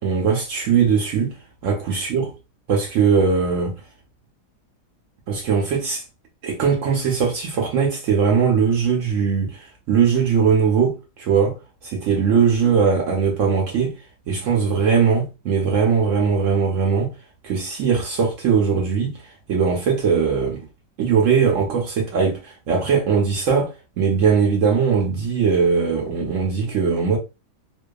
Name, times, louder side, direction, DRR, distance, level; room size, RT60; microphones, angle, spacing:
voice 1, 0.0-1.3 1.6-2.3 2.7-3.7 5.3-6.0 6.4-11.6 11.8-13.9 14.3-17.1 17.4-19.1 19.5-20.6 21.0-27.2, right 6 dB, 65° right, 0.8 m, -20 dB
2.6 x 2.2 x 2.3 m
omnidirectional pair, 1.8 m